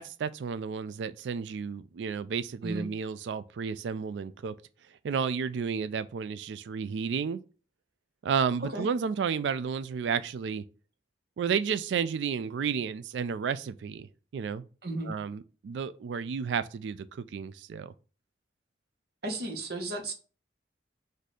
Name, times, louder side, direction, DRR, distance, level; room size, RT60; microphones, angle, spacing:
voice 1, 0.0-4.5 5.0-7.4 8.2-10.6 11.4-14.1 14.3-14.6 15.0-17.9, right 6 dB, 85° right, 0.3 m, -32 dB
voice 2, 14.8-15.1 19.2-20.1, right 1 dB, 65° right, 1.1 m, -34 dB
4.2 x 2.7 x 4.7 m
head